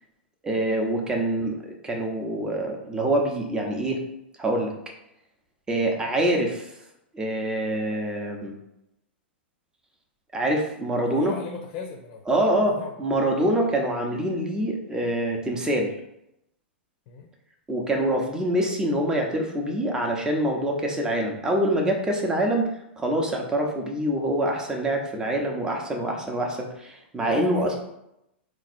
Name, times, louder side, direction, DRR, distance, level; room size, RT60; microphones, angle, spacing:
voice 1, 0.4-4.0 4.4-4.7 5.7-6.7 7.1-8.5 10.3-11.3 12.3-12.7 13.0-15.9 17.7-22.7 23.0-27.7, right 1 dB, 10° right, 1 dB, 0.8 m, -25 dB
voice 2, 10.9-12.9 17.1-17.3 27.2-27.8, left 5 dB, 40° left, 2 dB, 0.7 m, -38 dB
4.0 x 2.5 x 4.3 m, 0.82 s
figure-of-eight pair, 100°, 6 cm